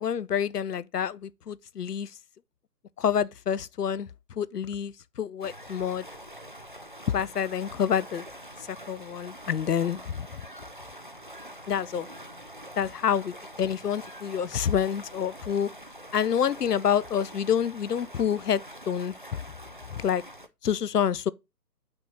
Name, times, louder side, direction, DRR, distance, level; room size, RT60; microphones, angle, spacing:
voice 1, 0.0-2.1 3.0-4.1 4.4-4.9 5.2-6.0 7.1-8.2 8.7-10.1 11.7-12.1 12.8-15.7 16.1-18.6 18.9-19.1 20.0-20.2 20.6-21.3, left 8 dB, 70° left, 0.7 m, -27 dB
sound 1, 5.4-20.5, equal, 35° right, 0.4 m, -45 dB
6.4 x 6.0 x 3.9 m
figure-of-eight pair, 140°, 50 cm